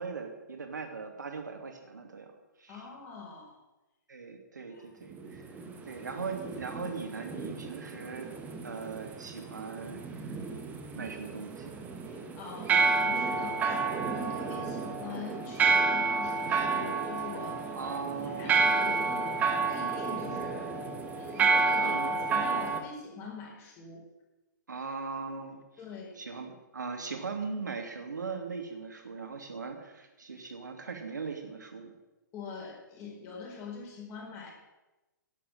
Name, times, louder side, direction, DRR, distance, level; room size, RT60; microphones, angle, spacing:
voice 1, 0.0-2.3 2.6-2.8 4.1-5.4 5.9-8.3 8.6-10.4 10.9-11.8 17.7-18.6 21.7-22.2 24.7-25.8 26.2-31.9, right 5 dB, 65° right, 4 dB, 2.6 m, -39 dB
voice 2, 2.7-3.6 4.6-4.9 12.1-17.9 18.2-20.7 21.2-21.9 22.2-24.0 25.8-26.2 32.3-34.5, left 5 dB, 25° left, -2 dB, 4.6 m, -44 dB
sound 1, 5.1-22.8, right 4 dB, 15° right, 1.4 m, -30 dB
11.0 x 8.6 x 8.8 m, 1.1 s
figure-of-eight pair, 120°, 11 cm